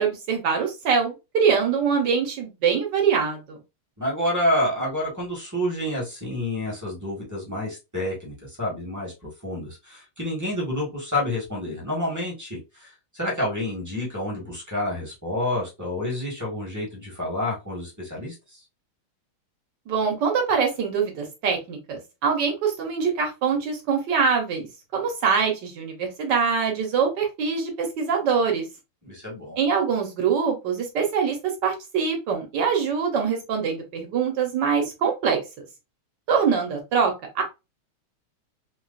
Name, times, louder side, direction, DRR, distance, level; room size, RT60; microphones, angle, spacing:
voice 1, 0.0-3.6 19.9-24.7 24.9-28.6 29.6-35.4 36.3-37.4, right 6 dB, 65° right, 1.3 m, -24 dB
voice 2, 4.0-18.6 29.0-29.6, left 1 dB, 10° right, 0.9 m, -29 dB
4.5 x 2.3 x 2.4 m
omnidirectional pair, 2.3 m